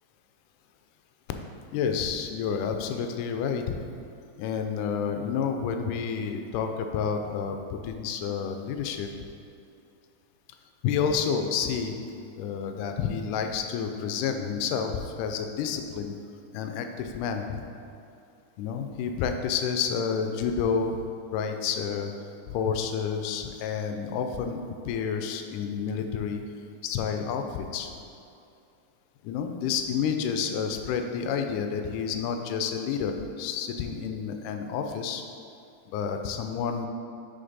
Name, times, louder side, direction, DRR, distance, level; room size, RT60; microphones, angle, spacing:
voice 1, 1.7-3.9 4.4-9.1 10.8-12.0 12.4-16.1 16.5-17.6 18.6-21.0 21.3-22.1 22.5-26.4 26.8-28.0 29.2-35.2 35.9-36.9, left 6 dB, 85° left, 5 dB, 2.1 m, -29 dB
6.7 x 5.1 x 4.0 m, 2.6 s
omnidirectional pair, 3.7 m